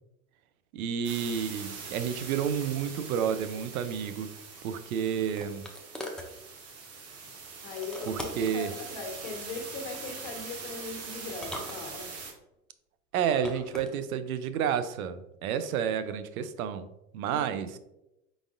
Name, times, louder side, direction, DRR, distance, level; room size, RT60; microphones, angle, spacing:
voice 1, 0.7-4.3 4.6-5.7 8.1-8.7 13.1-16.9 17.1-17.8, right 8 dB, 75° right, 11 dB, 0.6 m, -30 dB
sound 1, 1.0-12.3, right 4 dB, 35° right, 1.1 m, -43 dB
sound 2, 4.6-6.3 7.8-8.6 9.9-10.4 11.3-12.3 13.2-13.9, equal, ahead, 0.4 m, -42 dB
voice 2, 7.6-12.1 17.3-17.6, left 4 dB, 55° left, 3 dB, 1.2 m, -40 dB
4.7 x 4.0 x 2.4 m, 0.89 s
hypercardioid pair, 100°, 43 cm